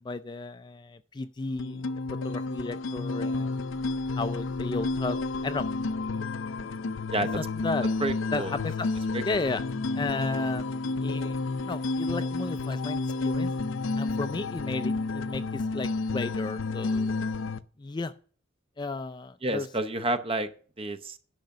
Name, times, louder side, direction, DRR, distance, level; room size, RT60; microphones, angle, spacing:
voice 1, 0.0-1.8 2.2-3.6 4.1-5.7 7.4-7.9 8.3-8.9 9.2-9.6 10.0-10.7 11.0-13.5 14.0-17.2 17.8-18.1 18.8-19.7, left 3 dB, 20° left, 12 dB, 0.4 m, -33 dB
sound 1, 1.6-17.6, left 3 dB, 75° left, 0.5 m, -31 dB
sound 2, 3.5-6.8, equal, 60° right, 3.0 m, -52 dB
voice 2, 8.0-8.5 9.1-9.2 19.4-20.5 20.8-21.2, right 2 dB, 30° right, 11 dB, 0.8 m, -29 dB
10.5 x 5.9 x 6.5 m, 0.43 s
head